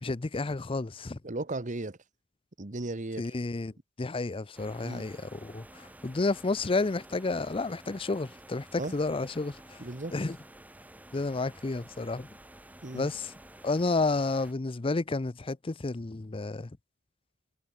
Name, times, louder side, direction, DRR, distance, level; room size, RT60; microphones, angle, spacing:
voice 1, 0.0-1.2 3.2-3.7 4.0-9.6 10.1-10.4 11.1-12.3 12.9-13.3 13.6-16.7, left 3 dB, 25° left, 0.5 m, -31 dB
voice 2, 1.2-2.0 2.6-3.3 4.8-5.1 8.7-8.9 9.8-10.1 12.8-13.1, right 2 dB, 40° right, 1.1 m, -36 dB
sound 1, 4.6-14.5, right 1 dB, 10° right, 3.1 m, -51 dB
head